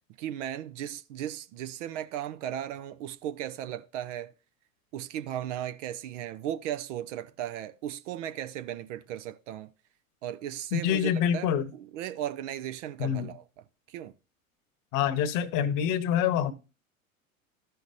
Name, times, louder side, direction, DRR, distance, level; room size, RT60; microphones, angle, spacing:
voice 1, 0.2-4.3 4.9-9.7 10.2-13.4 13.9-14.1, right 11 dB, 60° right, 0.7 m, -36 dB
voice 2, 10.7-11.6 13.0-13.3 14.9-16.5, left 9 dB, 45° left, 1.1 m, -26 dB
14.0 x 5.7 x 2.6 m
hypercardioid pair, 85°, 42 cm